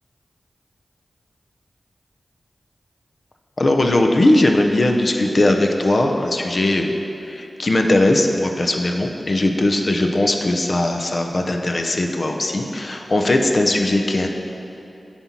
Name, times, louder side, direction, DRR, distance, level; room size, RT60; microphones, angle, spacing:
voice 1, 3.6-6.9 7.3-14.3, left 1 dB, 55° left, 4 dB, 0.7 m, -19 dB
9.3 x 4.4 x 5.9 m, 2.8 s
cardioid pair, 40°, 0 cm